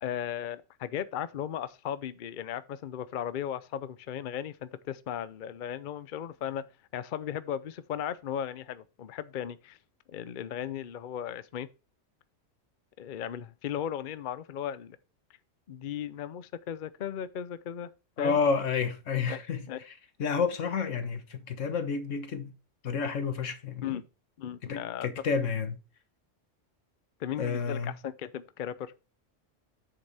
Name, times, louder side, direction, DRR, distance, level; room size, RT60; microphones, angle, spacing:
voice 1, 0.0-6.7 6.9-9.8 10.1-11.7 13.0-15.0 15.7-17.9 18.2-18.4 19.3-19.4 19.7-19.8 23.8-24.0 24.4-25.1 27.2-28.9, left 9 dB, 50° left, 0.7 m, -36 dB
voice 2, 18.2-19.7 20.2-22.5 22.8-24.0 24.6-25.8 27.4-27.9, left 5 dB, 85° left, 1.5 m, -30 dB
8.1 x 6.8 x 3.4 m
omnidirectional pair, 1.2 m